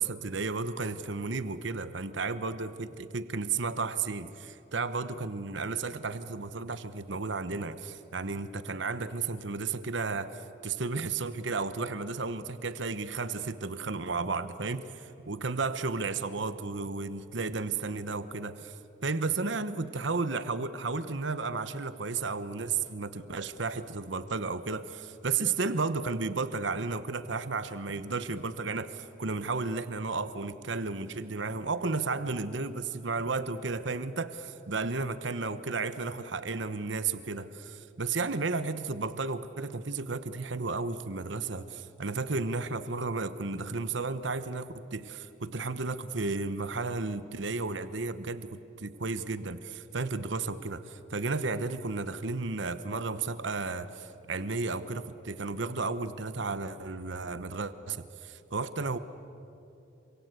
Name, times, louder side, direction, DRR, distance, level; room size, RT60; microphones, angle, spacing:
voice 1, 0.0-18.8 19.0-59.0, right 4 dB, 65° right, 12 dB, 1.0 m, -33 dB
27.5 x 25.0 x 8.2 m, 2.8 s
head